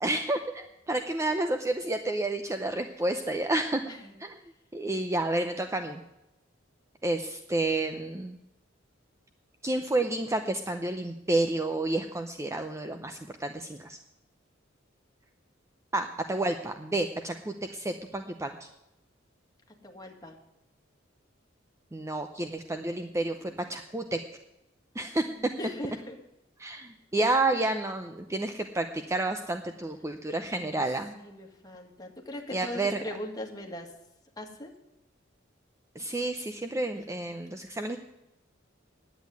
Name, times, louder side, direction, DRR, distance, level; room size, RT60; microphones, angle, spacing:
voice 1, 0.0-3.8 4.2-4.4 4.7-6.0 7.0-8.4 9.6-14.0 15.9-18.7 21.9-24.2 24.9-25.5 26.6-31.2 32.5-33.0 36.0-38.0, right 2 dB, 15° right, 6 dB, 0.6 m, -30 dB
voice 2, 19.8-20.4 25.1-26.2 30.5-30.8 31.2-33.9 34.4-34.7 37.1-37.2, left 1 dB, 20° left, 1 dB, 1.8 m, -40 dB
10.0 x 8.3 x 9.4 m, 0.90 s
head